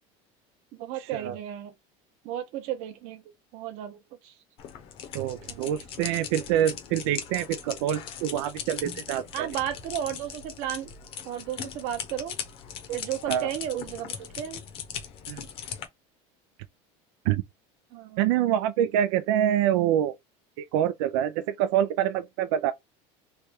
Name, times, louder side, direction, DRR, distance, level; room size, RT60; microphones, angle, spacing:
voice 1, 0.7-1.7 2.2-3.2 3.5-4.3 5.5-5.8 9.3-10.9 11.2-12.4 12.9-14.6 17.9-18.5, right 11 dB, 55° right, 0.8 m, -34 dB
sound 1, 4.6-15.9, left 8 dB, 40° left, 0.7 m, -39 dB
voice 2, 5.1-9.5 13.3-13.5 15.3-15.5 17.3-17.4 18.2-20.1 20.6-22.7, right 11 dB, 90° right, 0.4 m, -26 dB
3.3 x 2.3 x 4.3 m
cardioid pair, 175°, 15 cm